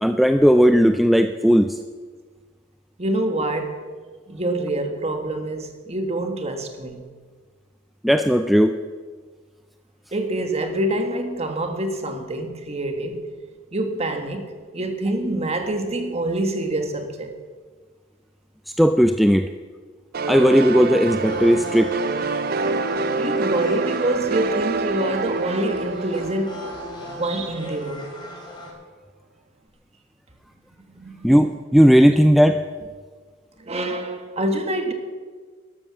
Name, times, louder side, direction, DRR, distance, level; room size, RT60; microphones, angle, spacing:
voice 1, 0.0-1.8 8.0-8.8 18.7-19.5 20.3-21.9 31.2-32.6, equal, ahead, 8 dB, 0.4 m, -16 dB
voice 2, 3.0-3.8 4.3-7.1 10.1-13.3 13.7-17.4 23.2-26.7 27.0-28.1 30.9-31.3 33.6-34.9, right 1 dB, 35° right, 6 dB, 1.6 m, -26 dB
sound 1, 20.1-27.6, right 3 dB, 50° right, 0.6 m, -27 dB
sound 2, 21.2-28.7, left 1 dB, 25° left, 3.1 m, -37 dB
12.5 x 12.5 x 6.1 m, 1.5 s
head